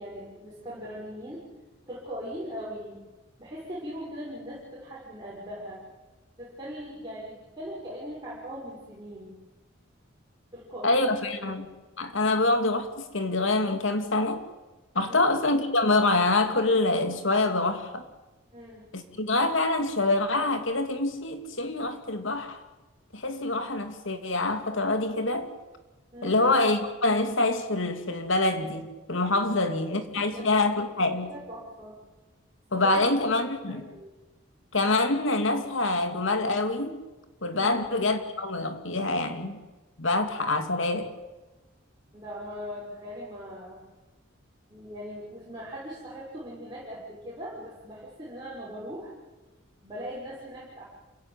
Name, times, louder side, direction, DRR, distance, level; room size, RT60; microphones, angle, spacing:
voice 1, 0.0-1.4 1.9-2.9 3.4-5.8 6.4-9.3 10.5-11.5 15.1-15.4 18.5-18.9 26.1-26.5 29.5-29.6 29.9-30.6 31.1-32.0 32.7-34.1 37.5-38.0 42.1-43.8 44.7-49.1 49.8-50.8, equal, 20° right, -7 dB, 6.6 m, -40 dB
voice 2, 10.8-11.7 12.0-14.4 14.9-18.0 18.9-22.6 23.1-25.5 26.2-31.3 32.7-33.9 34.7-36.9 37.4-39.6 40.0-41.1, left 2 dB, 70° left, 7 dB, 2.5 m, -26 dB
28.0 x 16.5 x 9.2 m, 1.1 s
head